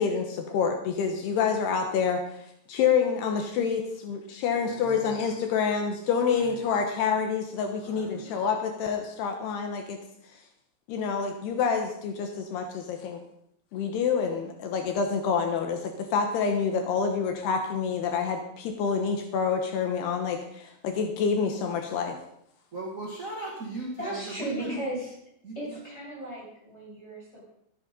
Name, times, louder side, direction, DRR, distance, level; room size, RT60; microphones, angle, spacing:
voice 1, 0.0-10.0 10.9-13.2 13.7-22.2, left 6 dB, 75° left, 4 dB, 3.1 m, -27 dB
voice 2, 4.5-5.2 6.3-6.6 7.8-8.3 22.7-24.7 25.4-25.5, right 2 dB, 30° right, -3 dB, 1.6 m, -38 dB
voice 3, 24.0-25.2 25.5-27.5, right 1 dB, 15° left, -6 dB, 7.6 m, -36 dB
14.0 x 11.5 x 5.3 m, 0.74 s
omnidirectional pair, 4.9 m